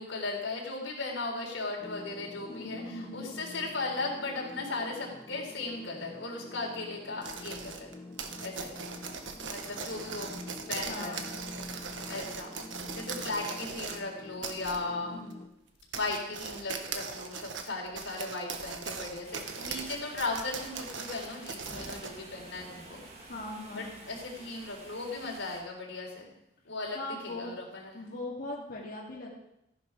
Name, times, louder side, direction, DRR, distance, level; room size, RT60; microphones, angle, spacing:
voice 1, 0.0-7.9 8.4-8.7 9.4-10.4 10.7-11.2 12.1-12.5 12.9-15.2 15.9-23.0 23.7-26.3 26.6-28.0, left 3 dB, 90° left, -1 dB, 3.9 m, -37 dB
sound 1, 1.8-15.5, left 2 dB, 15° left, 1.4 m, -47 dB
voice 2, 2.5-3.3 10.9-11.3 14.9-15.3 23.3-24.0 26.9-27.5 27.9-29.3, left 2 dB, 50° left, -4 dB, 2.4 m, -40 dB
sound 2, 7.2-14.0 14.4-14.8 15.3-15.4 15.8-22.1, right 5 dB, 75° right, 1.4 m, -40 dB
sound 3, 19.2-25.6, right 1 dB, 35° right, 2.5 m, -49 dB
14.5 x 11.0 x 4.7 m, 0.82 s
head